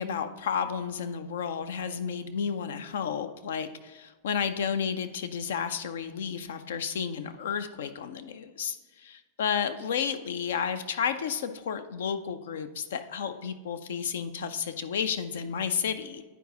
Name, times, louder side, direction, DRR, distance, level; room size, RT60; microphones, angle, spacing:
voice 1, 0.0-16.2, left 7 dB, 60° left, 10 dB, 0.5 m, -32 dB
9.2 x 4.7 x 3.8 m, 1.3 s
figure-of-eight pair, 90°, 0 cm